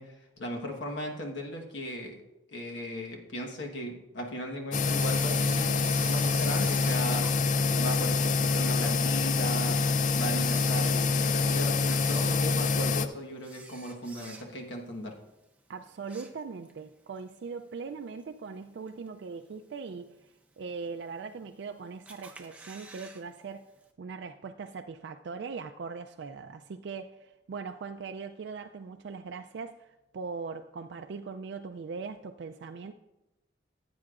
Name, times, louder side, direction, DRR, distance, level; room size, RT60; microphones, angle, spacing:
voice 1, 0.0-2.2 2.5-7.4 7.8-9.8 10.1-15.1, equal, 75° left, 1 dB, 1.3 m, -37 dB
sound 1, 4.7-13.1, left 4 dB, 40° left, 0.3 m, -26 dB
Camera, 4.8-8.4 8.9-9.0 9.7-9.8 10.3-11.3 11.8-14.8 15.1-15.4 15.8-16.8 17.2-17.3 18.2-18.3 18.9-19.3 19.7-19.8 20.0-20.1 20.2-20.3 21.1-21.6 22.1-23.2 23.5-23.6 23.8-23.9, right 3 dB, 5° right, 0.6 m, -47 dB
voice 2, 15.7-20.1 20.6-23.7 24.0-32.9, right 5 dB, 65° right, 6 dB, 0.3 m, -40 dB
16.0 x 8.4 x 2.5 m, 0.97 s
head